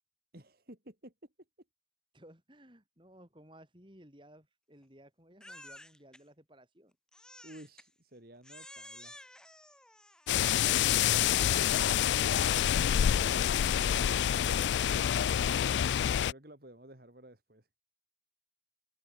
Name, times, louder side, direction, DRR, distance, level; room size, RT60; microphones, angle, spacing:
voice 1, 0.3-1.1 7.4-9.2 13.0-17.7, right 1 dB, 55° right, 3.4 m, -53 dB
voice 2, 2.1-7.0, right 1 dB, 25° right, 7.4 m, -57 dB
Crying sobbing, 5.4-6.2 7.1-7.9 8.4-10.6, left 1 dB, 5° left, 5.3 m, -52 dB
sound 1, 10.3-16.3, left 10 dB, 75° left, 0.3 m, -27 dB
head